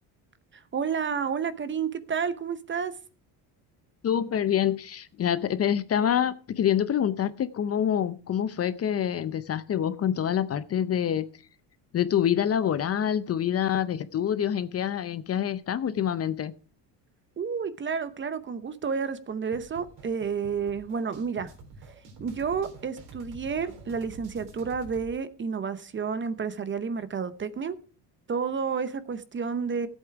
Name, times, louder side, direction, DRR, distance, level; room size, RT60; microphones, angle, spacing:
voice 1, 0.5-2.9 17.4-21.5 22.2-27.8 28.3-29.9, right 6 dB, 25° right, 0.8 m, -30 dB
voice 2, 4.0-11.3 11.9-16.5, left 9 dB, 35° left, 0.7 m, -26 dB
sound 1, 19.5-25.1, right 3 dB, 60° right, 3.9 m, -48 dB
14.0 x 8.2 x 4.7 m
cardioid pair, 115°, 42 cm